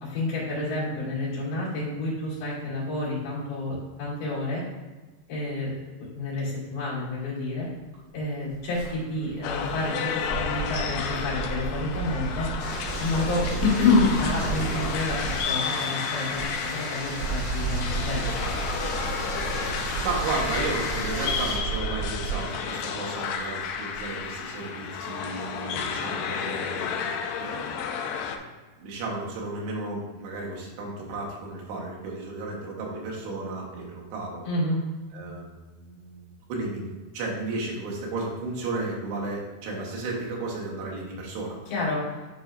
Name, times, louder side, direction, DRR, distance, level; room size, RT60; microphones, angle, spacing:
voice 1, 0.0-4.6 5.3-5.8 6.1-7.7 8.1-12.5 13.0-18.5 34.5-34.8 41.7-42.1, left 3 dB, 65° left, -8 dB, 4.0 m, -28 dB
sound 1, 7.5-7.6 7.8-15.6 16.1-22.6 23.1-24.2, right 4 dB, 60° right, 3.0 m, -34 dB
sound 2, 9.4-28.4, left 7 dB, 85° left, 2.1 m, -32 dB
sound 3, 12.6-21.6, left 1 dB, 50° left, 2.9 m, -35 dB
voice 2, 20.0-26.9 27.4-27.7 28.8-34.4 35.1-41.6, right 2 dB, 90° right, -2 dB, 3.4 m, -33 dB
10.5 x 4.2 x 2.6 m, 1.3 s
omnidirectional pair, 4.6 m